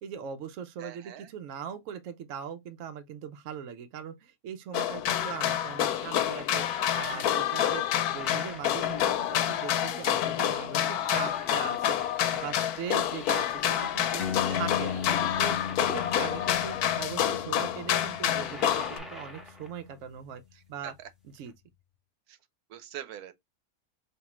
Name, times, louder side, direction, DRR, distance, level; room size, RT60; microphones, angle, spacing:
voice 1, 0.0-12.0 12.3-14.2 14.5-15.0 15.4-20.4 20.7-21.0 21.2-21.5, right 8 dB, 70° right, 0.9 m, -40 dB
voice 2, 0.8-1.3 7.5-7.8 10.6-10.7 14.3-14.9 16.2-16.6 20.8-21.1 22.3-22.4 22.7-23.3, right 10 dB, 85° right, 1.2 m, -44 dB
sound 1, 4.7-19.0, left 10 dB, 85° left, 1.1 m, -28 dB
sound 2, 5.2-17.0 18.1-19.9 21.5-21.6, equal, ahead, 0.6 m, -47 dB
sound 3, 14.2-21.1, left 7 dB, 60° left, 0.6 m, -38 dB
4.7 x 2.8 x 3.0 m
omnidirectional pair, 1.6 m